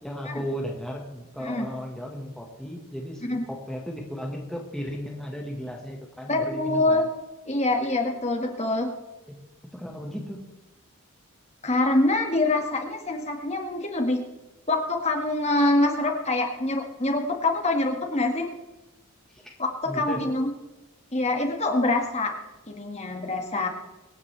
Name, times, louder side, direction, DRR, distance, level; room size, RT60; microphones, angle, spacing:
voice 1, 0.0-7.0 9.3-9.4 9.7-10.5 19.3-19.5 19.8-20.2, equal, ahead, -1 dB, 1.6 m, -35 dB
voice 2, 6.3-7.1 7.5-8.9 11.6-14.2 14.7-18.5 19.6-20.5 21.1-22.3 22.7-23.7, left 2 dB, 30° left, 3 dB, 1.9 m, -25 dB
25.0 x 9.9 x 3.4 m, 1.1 s
head